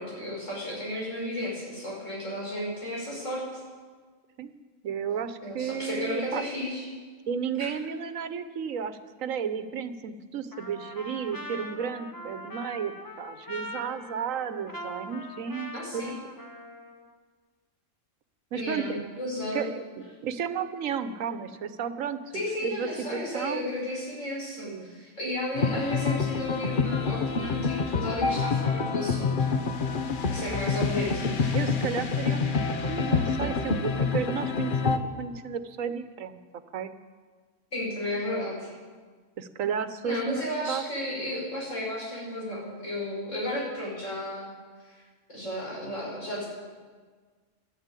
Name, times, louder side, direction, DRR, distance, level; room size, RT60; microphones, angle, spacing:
voice 1, 0.0-3.6 5.4-6.9 7.6-7.7 15.7-16.1 18.5-19.7 22.3-29.5 30.3-31.6 37.7-38.8 40.0-44.5 44.9-45.0 45.3-46.5, left 1 dB, 70° left, -4 dB, 5.9 m, -33 dB
voice 2, 4.8-6.4 7.3-16.1 18.5-19.1 19.5-23.7 24.6-25.0 31.5-36.4 36.7-36.9 39.4-40.8, right 7 dB, 85° right, 11 dB, 1.3 m, -33 dB
Trumpet, 10.5-17.1, left 1 dB, 20° left, 0.9 m, -42 dB
sound 1, 25.5-35.0, left 5 dB, 45° left, 1.0 m, -27 dB
12.5 x 12.0 x 9.0 m, 1.5 s
omnidirectional pair, 1.3 m